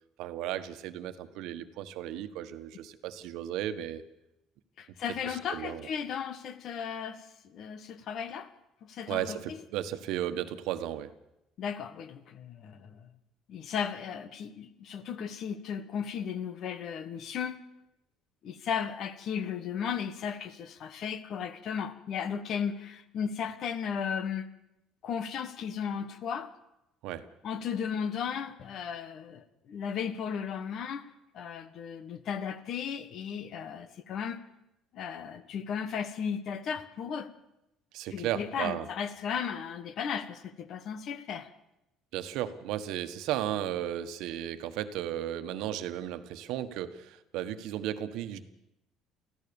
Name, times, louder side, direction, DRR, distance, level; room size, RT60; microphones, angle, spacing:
voice 1, 0.2-4.0 5.2-5.9 9.1-11.1 27.0-27.2 37.9-38.9 42.1-48.4, right 11 dB, 70° right, 1.4 m, -35 dB
voice 2, 4.8-8.5 8.8-9.6 11.6-13.1 13.5-17.6 18.4-24.5 25.0-26.5 27.4-31.1 31.3-34.4 34.9-37.3 38.1-41.5, left 7 dB, 45° left, 1.5 m, -35 dB
25.0 x 15.5 x 7.1 m
cardioid pair, 150°, 0 cm